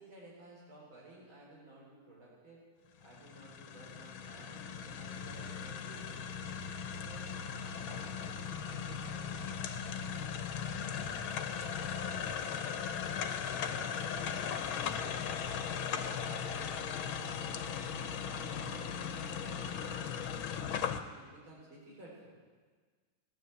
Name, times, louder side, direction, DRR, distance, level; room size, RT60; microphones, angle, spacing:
voice 1, 0.0-2.7 3.0-6.5 6.9-9.6 10.0-10.4 10.7-13.2 13.6-15.8 16.2-16.5 16.9-20.8 21.1-22.3, right 1 dB, 85° right, -5 dB, 4.9 m, -55 dB
sound 1, 3.0-21.0, left 7 dB, 85° left, 1.7 m, -38 dB
16.0 x 11.0 x 8.1 m, 1.5 s
omnidirectional pair, 2.2 m